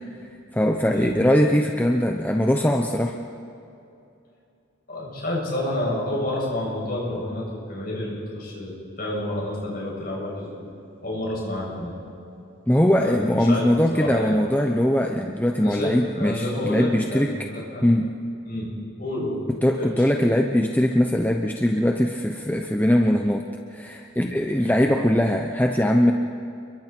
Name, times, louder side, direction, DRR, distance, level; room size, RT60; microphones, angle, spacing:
voice 1, 0.5-3.2 12.7-17.4 17.8-18.1 19.6-23.4 23.7-26.1, equal, 10° left, 2 dB, 0.8 m, -21 dB
voice 2, 4.9-10.6 11.0-11.9 13.0-13.6 13.9-14.4 15.6-17.9 18.5-18.7 19.0-19.4 19.8-20.4 24.2-24.3, left 1 dB, 45° left, -4 dB, 7.5 m, -29 dB
29.0 x 22.5 x 4.6 m, 2.7 s
head